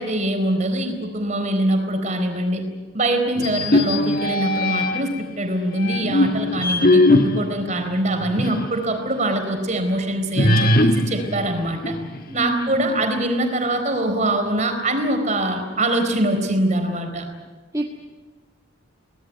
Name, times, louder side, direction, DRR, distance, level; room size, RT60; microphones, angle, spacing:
voice 1, 0.0-2.6 2.9-12.0 12.3-17.3, right 1 dB, 35° right, 6 dB, 4.1 m, -23 dB
sound 1, 3.4-5.2 5.8-8.8 9.2-9.3 10.4-12.4, left 1 dB, 45° left, 1.5 m, -20 dB
voice 2, 12.3-13.1 17.7-17.9, right 1 dB, 15° right, -1 dB, 1.8 m, -28 dB
23.5 x 19.0 x 9.5 m, 1.3 s
head